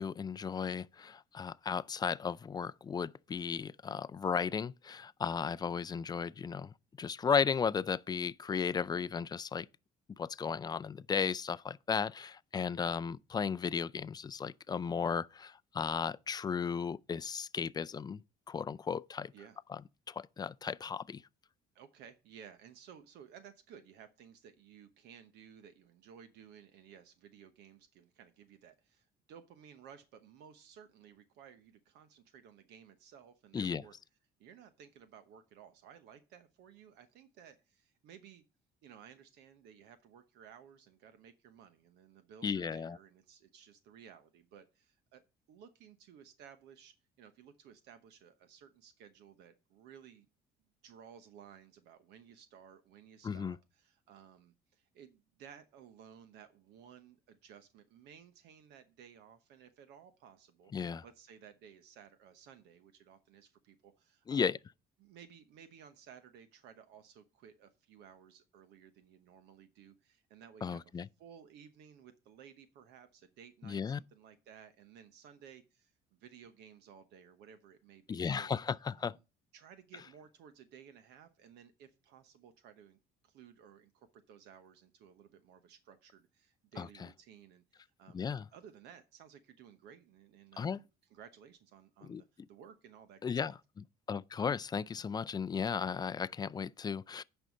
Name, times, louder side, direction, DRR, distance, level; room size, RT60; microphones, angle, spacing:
voice 1, 0.0-9.7 10.2-18.2 18.5-19.3 19.7-19.8 20.1-21.2 33.5-33.8 42.4-43.0 53.2-53.6 60.7-61.0 64.3-64.6 70.6-71.1 73.6-74.0 78.1-79.2 86.8-86.9 88.1-88.5 90.6-90.8 92.1-92.2 93.2-93.5 94.1-97.2, left 6 dB, 25° left, 0.4 m, -35 dB
voice 2, 21.7-33.9 34.4-38.4 38.8-45.2 45.5-50.3 50.8-64.5 65.0-78.5 79.0-79.2 79.5-83.0 83.2-88.2 88.5-93.2 93.4-93.5, right 8 dB, 85° right, 1.0 m, -57 dB
9.0 x 5.5 x 5.3 m
cardioid pair, 110°, 17 cm